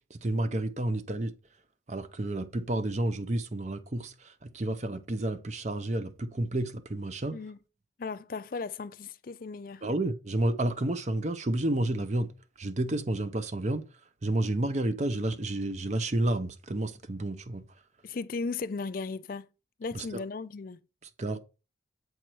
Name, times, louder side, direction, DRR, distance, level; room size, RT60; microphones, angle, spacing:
voice 1, 0.1-1.3 1.9-7.4 9.8-12.3 12.6-13.8 14.2-17.6 19.9-20.0 21.2-21.4, right 1 dB, 35° right, 0.7 m, -30 dB
voice 2, 8.0-9.8 18.0-19.5 19.8-20.8, left 4 dB, 45° left, 0.4 m, -36 dB
7.8 x 4.6 x 4.5 m
head